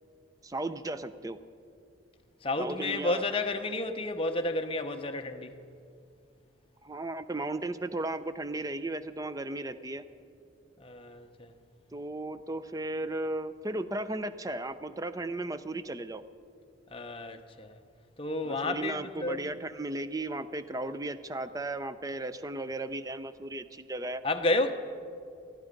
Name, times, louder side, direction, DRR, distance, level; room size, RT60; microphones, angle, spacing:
voice 1, 0.4-1.4 2.6-3.2 6.8-10.0 11.9-16.2 18.4-24.2, right 2 dB, 15° right, 0.5 m, -35 dB
voice 2, 2.4-5.5 10.8-11.5 16.9-17.8 18.2-19.5 24.2-24.7, left 2 dB, 25° left, 0.8 m, -31 dB
19.5 x 13.5 x 5.2 m
head